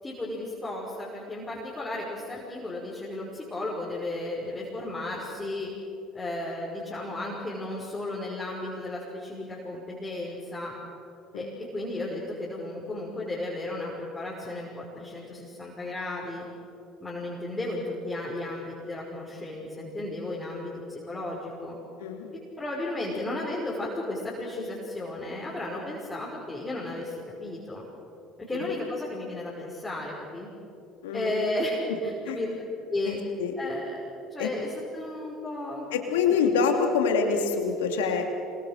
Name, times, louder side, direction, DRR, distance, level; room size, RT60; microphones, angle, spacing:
voice 1, 0.0-5.7 6.1-10.7 11.3-16.5 17.0-21.8 22.6-27.8 28.5-30.5 31.1-32.5 32.9-33.2 33.6-34.0 34.3-36.3, left 2 dB, 15° left, -5 dB, 5.9 m, -34 dB
voice 2, 22.0-22.3 28.5-28.7 31.0-31.3 31.9-32.0 32.2-32.4 33.0-33.5 34.4-34.5 35.9-38.2, left 5 dB, 80° left, 4 dB, 3.0 m, -26 dB
27.0 x 23.0 x 6.7 m, 2.9 s
hypercardioid pair, 65°, 0 cm